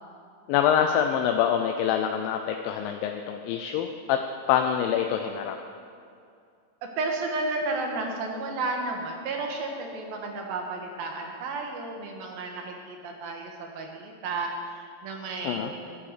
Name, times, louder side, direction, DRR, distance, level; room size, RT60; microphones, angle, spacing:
voice 1, 0.5-4.2 4.5-5.6 15.4-15.7, left 9 dB, 80° left, 5 dB, 2.3 m, -25 dB
voice 2, 7.0-16.0, right 3 dB, 75° right, 2 dB, 3.1 m, -32 dB
11.5 x 9.9 x 6.7 m, 2.4 s
omnidirectional pair, 4.3 m